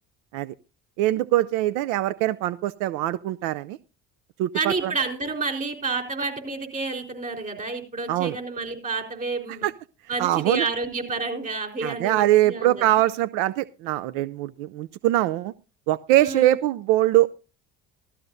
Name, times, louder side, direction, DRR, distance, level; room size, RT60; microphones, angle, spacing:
voice 1, 1.0-3.8 4.4-4.9 8.1-8.4 9.6-9.7 10.2-10.7 11.8-15.5 15.9-17.3, right 15 dB, 80° right, 16 dB, 0.5 m, -22 dB
voice 2, 4.5-9.7 10.1-13.0 16.1-16.6, right 3 dB, 30° right, 4 dB, 4.1 m, -30 dB
15.0 x 14.0 x 2.6 m, 0.33 s
supercardioid pair, 90°, 29 cm